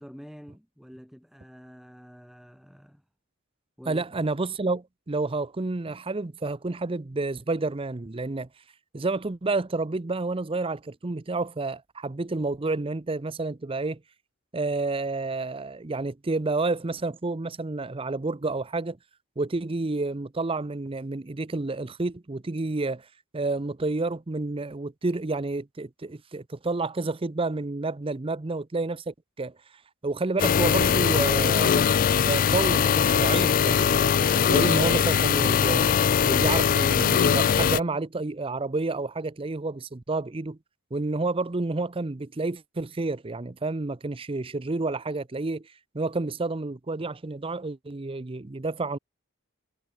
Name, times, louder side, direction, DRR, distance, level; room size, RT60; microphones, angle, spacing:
voice 1, 0.0-3.0 3.8-4.1, equal, ahead, 4.1 m, -47 dB
voice 2, 3.9-8.5 8.9-14.0 14.5-19.0 19.4-23.1 23.3-29.5 30.0-31.9 32.2-35.8 36.2-40.6 40.9-45.6 45.9-49.0, right 3 dB, 25° right, 0.6 m, -30 dB
sound 1, 30.4-37.8, left 7 dB, 40° left, 0.3 m, -21 dB
head